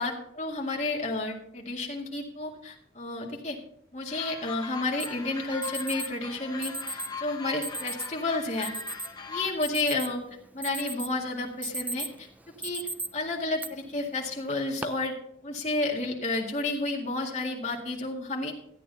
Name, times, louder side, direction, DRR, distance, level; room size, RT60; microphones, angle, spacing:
voice 1, 0.0-3.6 3.9-8.7 9.3-10.2 10.5-12.3 12.6-15.2 15.4-18.5, left 2 dB, 40° left, -1 dB, 2.1 m, -31 dB
sound 1, 4.1-9.5, left 5 dB, 25° left, 1.2 m, -40 dB
Alarm, 5.0-5.1 5.6-6.1 6.6-7.1 7.6-8.1 8.6-9.1 9.5-10.2 10.6-11.1 11.5-12.2 12.6-13.1 13.6-13.7 14.5-14.8, right 2 dB, 10° right, 0.3 m, -35 dB
14.0 x 9.3 x 4.0 m, 0.73 s
head